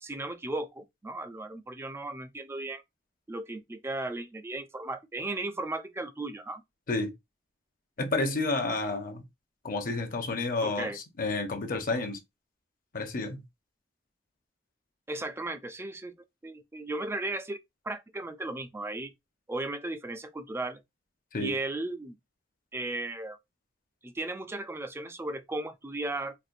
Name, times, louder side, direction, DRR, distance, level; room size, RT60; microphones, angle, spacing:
voice 1, 0.0-2.8 3.3-6.6 10.6-11.0 15.1-16.1 16.4-17.6 17.8-19.1 19.5-20.8 21.4-22.2 22.7-23.4 24.0-26.3, right 2 dB, 15° right, 0.3 m, -35 dB
voice 2, 8.0-9.2 9.6-10.9 11.2-12.2 12.9-13.4 21.3-21.5, left 3 dB, 50° left, 0.7 m, -30 dB
4.2 x 2.1 x 2.5 m
head